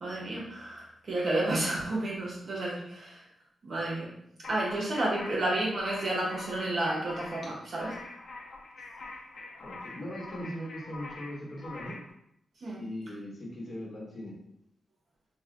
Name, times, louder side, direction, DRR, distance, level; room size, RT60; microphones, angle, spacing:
voice 1, 0.0-3.2 3.6-4.1 4.5-8.0 12.6-12.8, right 1 dB, 55° right, -4 dB, 1.2 m, -31 dB
sound 1, 4.4-12.1, left 3 dB, 70° left, 0.5 m, -45 dB
voice 2, 9.6-12.0 12.7-14.4, equal, 40° left, -3 dB, 1.1 m, -39 dB
3.1 x 2.2 x 3.8 m, 0.75 s
wide cardioid pair, 105°, 0 cm